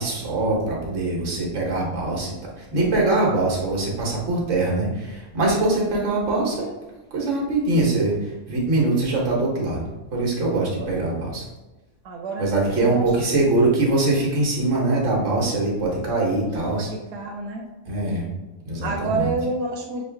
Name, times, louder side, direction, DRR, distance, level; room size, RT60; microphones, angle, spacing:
voice 1, 0.0-6.7 7.1-11.4 12.4-16.9 17.9-18.2 18.6-19.3, right 2 dB, 50° right, -3 dB, 1.4 m, -23 dB
voice 2, 12.0-13.1 16.7-17.6 18.8-20.1, right 3 dB, 85° right, 1 dB, 1.2 m, -29 dB
6.3 x 2.4 x 3.4 m, 1.1 s
omnidirectional pair, 1.7 m